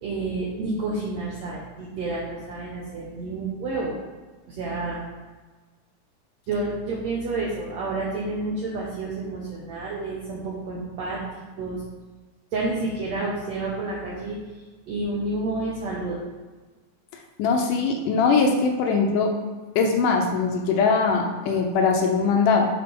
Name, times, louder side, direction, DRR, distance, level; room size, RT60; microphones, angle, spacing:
voice 1, 0.0-4.0 4.5-5.0 6.5-11.2 11.6-11.8 12.5-14.4 14.9-16.2, right 2 dB, 70° right, -4 dB, 1.7 m, -29 dB
voice 2, 17.4-19.3 19.8-22.7, left 4 dB, 75° left, 2 dB, 2.0 m, -21 dB
6.7 x 4.1 x 5.2 m, 1.3 s
omnidirectional pair, 4.2 m